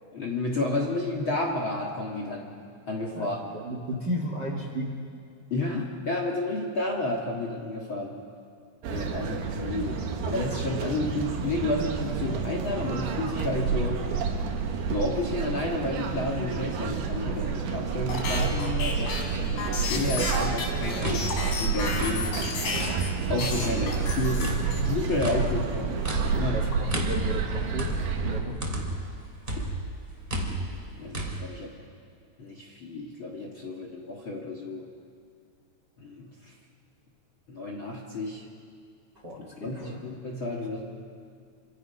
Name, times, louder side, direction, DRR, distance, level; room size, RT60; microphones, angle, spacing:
voice 1, 0.1-2.6 2.9-3.4 5.5-8.2 8.9-14.0 14.9-21.1 21.6-22.4 23.3-26.1 26.4-26.7 29.5-29.7 31.0-31.8 32.4-34.8 36.0-36.3 37.5-38.4 39.6-40.8, left 2 dB, 45° left, 0 dB, 1.9 m, -31 dB
voice 2, 3.5-5.0 19.0-19.1 25.4-25.5 26.5-28.0 28.2-28.6 39.2-40.0, right 1 dB, 40° right, 2 dB, 1.7 m, -33 dB
sound 1, 8.8-28.4, right 6 dB, 85° right, 3.5 m, -30 dB
sound 2, 18.1-23.1 23.4-25.0, left 3 dB, 60° left, 4.6 m, -32 dB
sound 3, 20.8-23.2 23.6-29.1 29.5-31.3, right 1 dB, 15° right, 2.5 m, -33 dB
28.0 x 25.0 x 5.7 m, 2.2 s
omnidirectional pair, 4.5 m